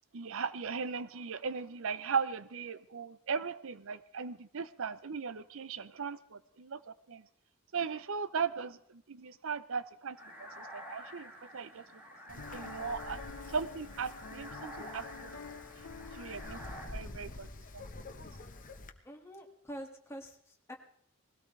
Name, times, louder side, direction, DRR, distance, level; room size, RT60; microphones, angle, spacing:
voice 1, 0.1-7.2 7.7-11.8 12.3-13.2 13.5-15.6 16.1-16.6 16.9-17.9, right 5 dB, 65° right, 15 dB, 0.6 m, -38 dB
sound 1, 10.2-16.9, equal, 10° right, 5.0 m, -49 dB
Wind, 12.3-18.9, left 2 dB, 40° left, 1.1 m, -48 dB
Piano, 12.4-17.7, left 6 dB, 70° left, 1.0 m, -49 dB
voice 2, 19.0-20.7, equal, 15° left, 1 dB, 2.0 m, -46 dB
20.0 x 16.5 x 3.3 m, 0.64 s
head